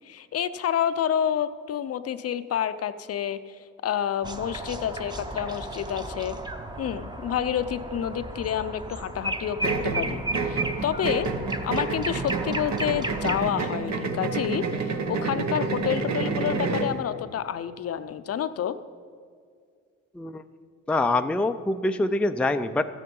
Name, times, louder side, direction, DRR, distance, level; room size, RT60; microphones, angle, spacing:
voice 1, 0.1-3.6 3.8-6.4 6.8-9.6 9.8-11.3 11.6-18.8, left 9 dB, 50° left, 12 dB, 0.6 m, -29 dB
sound 1, 4.2-13.5, right 2 dB, 15° right, 0.9 m, -34 dB
sound 2, 9.6-17.0, right 4 dB, 65° right, 1.1 m, -29 dB
voice 2, 20.9-22.9, left 2 dB, 5° left, 8 dB, 0.4 m, -25 dB
13.0 x 9.4 x 5.4 m, 2.2 s
cardioid pair, 90°, 30 cm